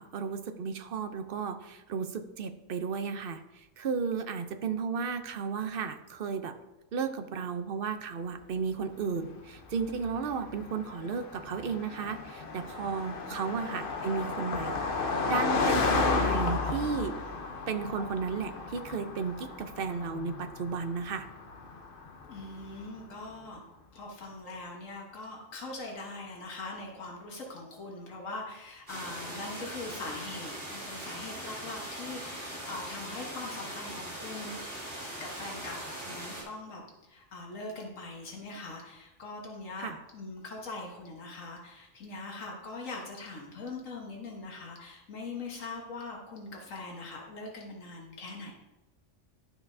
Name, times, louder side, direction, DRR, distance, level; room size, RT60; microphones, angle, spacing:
voice 1, 0.0-3.4 3.8-6.5 6.9-17.2 17.7-21.3 39.8-40.0, right 5 dB, 55° right, 8 dB, 0.7 m, -34 dB
Car passing by, 9.2-22.9, left 4 dB, 50° left, 0.9 m, -33 dB
voice 2, 22.3-23.6 23.9-34.6 35.2-36.8 37.1-48.5, left 3 dB, 85° left, -1 dB, 1.6 m, -42 dB
sound 1, 28.9-36.4, right 1 dB, 40° right, 3.1 m, -40 dB
12.0 x 5.9 x 2.6 m, 1.0 s
omnidirectional pair, 1.3 m